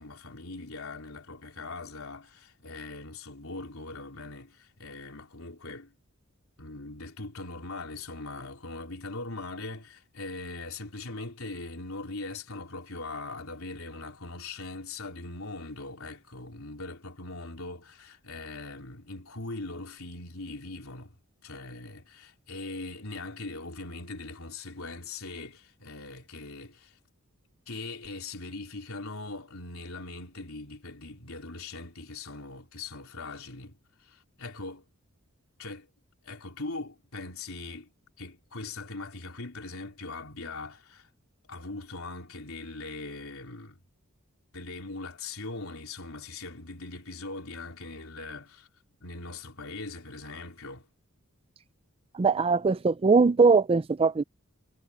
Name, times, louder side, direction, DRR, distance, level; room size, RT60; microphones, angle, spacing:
voice 1, 0.0-5.9 6.6-21.1 21.4-26.9 27.7-34.9 35.6-35.9 36.2-37.9 38.2-41.1 41.5-43.8 44.5-48.7 49.0-50.9, left 3 dB, 70° left, 4.3 m, -41 dB
voice 2, 52.1-54.2, right 4 dB, 25° right, 0.4 m, -21 dB
head